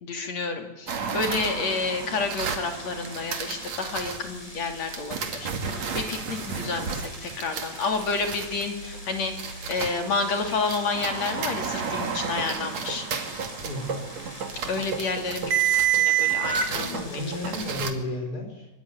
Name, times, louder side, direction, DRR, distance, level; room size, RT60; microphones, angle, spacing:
voice 1, 0.0-9.3 9.7-13.1 14.7-17.1 17.4-17.5, left 4 dB, 60° left, 5 dB, 4.0 m, -30 dB
sound 1, 0.9-4.2 4.9-10.1 10.4-17.9, right 8 dB, 60° right, 3.4 m, -30 dB
sound 2, 1.3-17.7, equal, 10° left, 7.0 m, -44 dB
sound 3, 7.3-12.9, right 1 dB, 80° right, 9.3 m, -48 dB
voice 2, 13.6-14.2 16.7-18.7, left 1 dB, 30° left, 3 dB, 6.5 m, -33 dB
24.0 x 23.0 x 10.0 m, 1.0 s
omnidirectional pair, 3.5 m